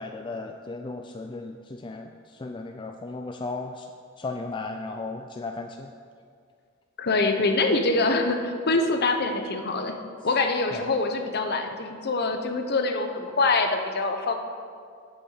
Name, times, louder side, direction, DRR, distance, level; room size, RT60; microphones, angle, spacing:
voice 1, 0.0-3.9 4.2-5.9 10.7-10.9, left 3 dB, 25° left, 4 dB, 0.4 m, -35 dB
voice 2, 7.0-10.0 10.2-14.3, left 3 dB, 50° left, 5 dB, 0.9 m, -24 dB
8.4 x 8.1 x 6.6 m, 2.2 s
head